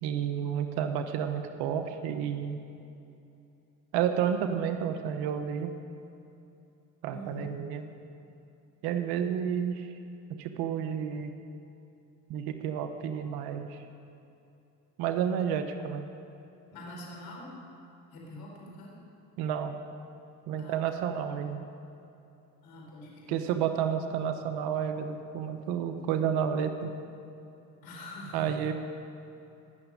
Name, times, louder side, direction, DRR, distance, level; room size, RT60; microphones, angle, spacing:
voice 1, 0.0-2.6 3.9-5.8 7.0-7.9 8.8-9.9 10.4-11.3 12.3-13.8 15.0-16.0 19.4-19.7 20.5-21.6 23.3-26.9 28.3-28.7, right 8 dB, 90° right, 7 dB, 1.0 m, -30 dB
voice 2, 7.1-7.6 16.7-17.6 18.1-19.0 20.6-20.9 22.6-23.5 27.8-28.7, left 1 dB, 75° left, -2 dB, 4.5 m, -44 dB
17.5 x 7.1 x 9.9 m, 2.8 s
supercardioid pair, 80°, 36 cm